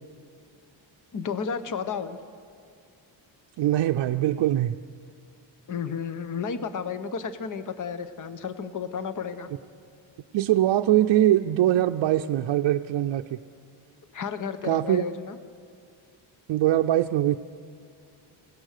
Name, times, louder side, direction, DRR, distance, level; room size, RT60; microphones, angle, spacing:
voice 1, 1.1-2.2 5.7-9.5 14.1-15.4, left 6 dB, 40° left, 11 dB, 1.0 m, -32 dB
voice 2, 3.6-4.7 10.3-13.4 14.6-15.0 16.5-17.4, right 13 dB, 65° right, 5 dB, 0.6 m, -22 dB
27.0 x 17.5 x 6.6 m, 2.3 s
wide cardioid pair, 165°, 46 cm